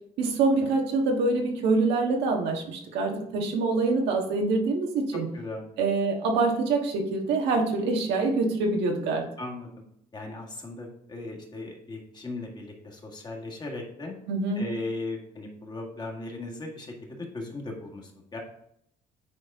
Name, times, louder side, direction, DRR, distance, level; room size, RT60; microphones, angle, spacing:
voice 1, 0.2-5.3 5.8-9.2 14.3-14.6, right 3 dB, 85° right, 2 dB, 1.4 m, -25 dB
voice 2, 5.3-5.7 9.4-9.7 10.1-14.2 14.5-18.4, left 2 dB, 25° left, 0 dB, 1.8 m, -37 dB
9.4 x 4.2 x 3.6 m, 0.71 s
cardioid pair, 110°, 17 cm